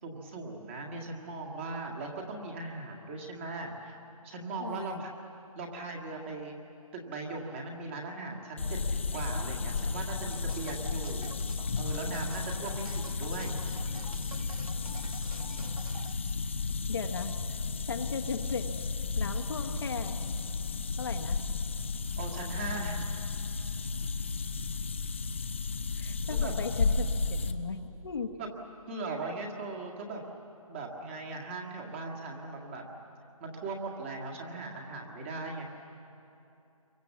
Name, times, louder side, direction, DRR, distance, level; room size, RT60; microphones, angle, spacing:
voice 1, 0.0-3.9 4.2-5.1 5.6-6.6 6.9-11.3 11.8-13.6 22.2-23.1 26.0-26.5 28.4-28.5 28.9-30.2 30.7-32.8 33.4-35.7, right 3 dB, 20° right, 1 dB, 1.9 m, -39 dB
voice 2, 4.6-5.0 16.9-17.6 17.8-18.7 19.1-20.2 21.0-21.4 25.9-28.4, left 5 dB, 40° left, 5 dB, 1.1 m, -37 dB
sound 1, 8.6-27.5, left 4 dB, 20° left, 0.5 m, -33 dB
sound 2, 10.3-16.1, right 3 dB, 75° right, 1.6 m, -46 dB
27.5 x 23.5 x 7.4 m, 2.8 s
hypercardioid pair, 170°, 19 cm